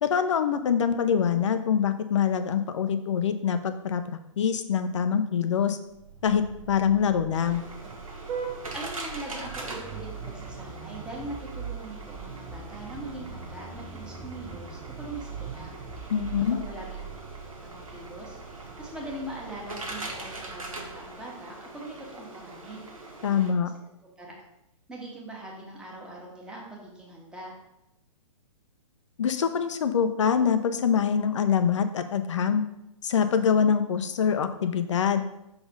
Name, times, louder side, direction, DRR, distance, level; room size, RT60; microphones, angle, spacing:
voice 1, 0.0-4.0 4.4-5.8 6.2-7.6 16.1-16.6 23.2-23.7 29.2-32.6 33.0-35.2, left 7 dB, 60° left, 10 dB, 0.7 m, -24 dB
Vehicle horn car horn honking, 5.9-21.3, right 6 dB, 25° right, 1.1 m, -41 dB
sound 1, 7.4-23.5, right 2 dB, 90° right, 1.6 m, -42 dB
voice 2, 8.7-15.7 16.4-17.1 17.6-18.4 18.8-22.8 24.0-24.3 24.9-27.5, right 1 dB, 5° right, -3 dB, 1.6 m, -41 dB
5.8 x 4.1 x 5.3 m, 0.85 s
hypercardioid pair, 125°, 17 cm